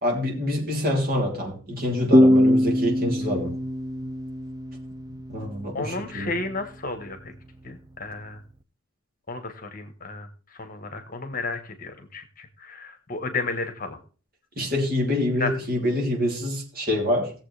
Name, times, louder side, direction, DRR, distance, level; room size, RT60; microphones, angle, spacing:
voice 1, 0.0-3.5 5.3-6.3 14.6-17.3, left 1 dB, 40° right, 0 dB, 3.3 m, -26 dB
sound 1, 2.1-5.5, equal, 15° right, 0.4 m, -21 dB
voice 2, 5.7-7.3 7.6-8.4 9.3-10.3 10.6-14.0 15.4-15.5, left 3 dB, 40° left, 7 dB, 1.3 m, -32 dB
18.0 x 7.4 x 3.4 m, 0.38 s
head